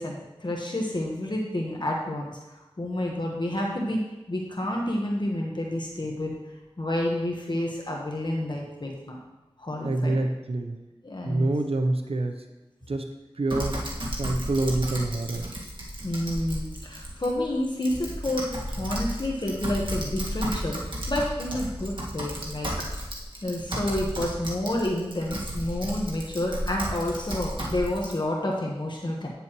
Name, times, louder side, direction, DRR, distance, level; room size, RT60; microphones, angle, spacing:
voice 1, 0.0-2.3 2.8-4.0 4.3-6.4 6.8-9.2 9.6-10.2 11.0-11.5 16.0-20.8 21.1-22.7 23.4-29.3, left 1 dB, 50° left, -1 dB, 1.2 m, -29 dB
voice 2, 9.8-10.8 11.2-12.4 12.9-13.1 13.3-13.9 14.2-15.4, right 2 dB, 75° right, 6 dB, 0.7 m, -26 dB
Typing, 13.5-28.1, equal, 55° right, 1.8 m, -33 dB
9.4 x 6.8 x 3.1 m, 1.1 s
wide cardioid pair, 45°, 10 cm